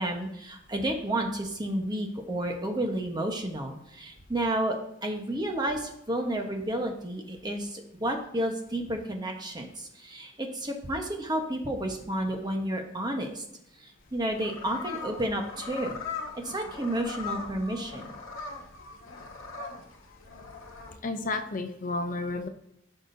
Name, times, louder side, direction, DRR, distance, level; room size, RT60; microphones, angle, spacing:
voice 1, 0.0-13.4 13.8-16.0 16.3-18.1, right 1 dB, 20° right, 2 dB, 1.1 m, -31 dB
sound 1, 14.0-20.9, left 5 dB, 75° left, 1.6 m, -40 dB
voice 2, 21.0-22.5, left 2 dB, 40° left, 7 dB, 0.6 m, -31 dB
14.5 x 6.0 x 2.7 m, 0.77 s
head